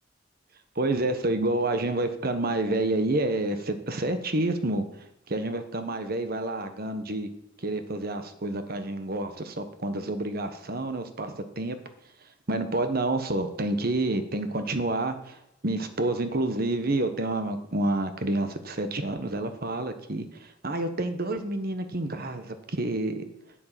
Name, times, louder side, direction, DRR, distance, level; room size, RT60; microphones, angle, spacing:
voice 1, 0.7-7.3 7.6-11.8 12.5-15.4 15.6-23.2, right 2 dB, 50° right, 8 dB, 1.3 m, -29 dB
9.9 x 7.7 x 7.5 m, 0.84 s
head